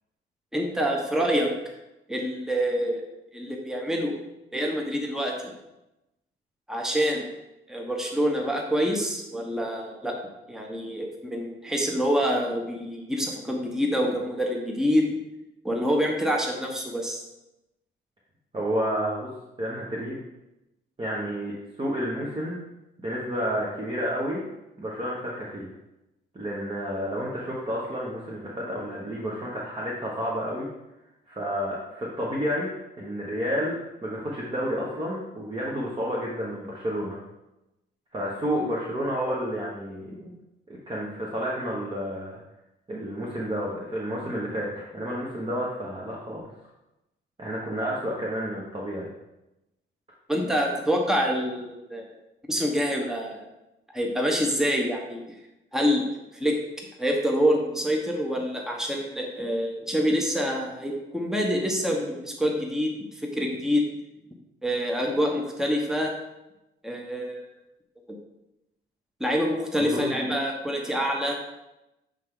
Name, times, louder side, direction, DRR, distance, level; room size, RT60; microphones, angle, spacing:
voice 1, 0.5-1.5 2.1-3.0 3.3-4.2 4.5-5.5 6.7-7.3 7.7-10.2 10.5-15.0 15.6-17.2 50.3-52.1 52.5-53.5 53.9-55.2 55.7-56.1 56.3-63.8 64.6-66.1 66.8-67.4 68.1-68.2 69.2-71.4, equal, ahead, 1 dB, 1.0 m, -26 dB
voice 2, 18.5-19.3 19.6-20.2 21.0-22.6 23.0-24.4 24.8-25.7 26.3-30.7 31.3-32.7 33.0-37.2 38.1-40.3 40.7-42.4 42.9-46.4 47.4-49.1 69.8-70.1, equal, 25° right, -4 dB, 1.2 m, -30 dB
7.4 x 3.4 x 3.8 m, 0.93 s
cardioid pair, 80°, 21 cm